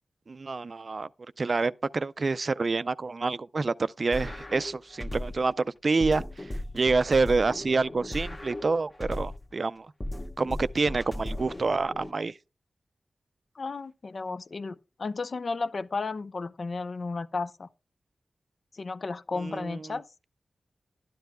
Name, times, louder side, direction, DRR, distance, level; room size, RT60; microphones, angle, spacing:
voice 1, 0.3-1.1 1.4-9.9 10.4-12.3 19.4-19.8, right 3 dB, 50° right, 0.4 m, -27 dB
sound 1, 4.1-5.5 6.0-9.5 10.0-12.1, left 1 dB, 25° left, 1.1 m, -36 dB
voice 2, 13.5-17.7 18.7-20.0, left 3 dB, 55° left, 0.6 m, -33 dB
12.0 x 10.5 x 2.2 m
wide cardioid pair, 70°, 0 cm